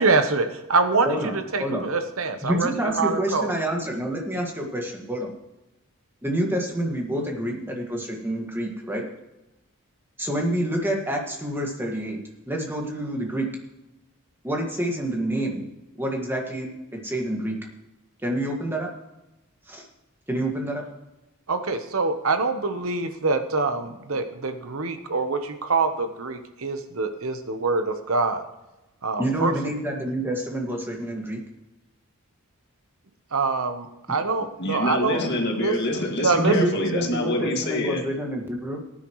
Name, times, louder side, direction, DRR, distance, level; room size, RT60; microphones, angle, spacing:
voice 1, 0.0-3.5 21.5-28.4 29.0-29.5 33.3-35.2 35.6-35.7 36.2-36.6, right 3 dB, 70° right, 8 dB, 1.0 m, -25 dB
voice 2, 1.0-1.9 2.4-5.3 6.2-9.0 10.2-12.2 12.5-13.5 14.4-15.6 16.0-17.6 18.2-18.9 19.7-19.9 20.3-20.8 29.2-31.4 36.4-38.8, right 1 dB, 10° right, 0 dB, 1.9 m, -27 dB
voice 3, 34.6-38.0, left 1 dB, 50° left, 1 dB, 2.2 m, -26 dB
17.5 x 9.9 x 3.1 m, 0.97 s
head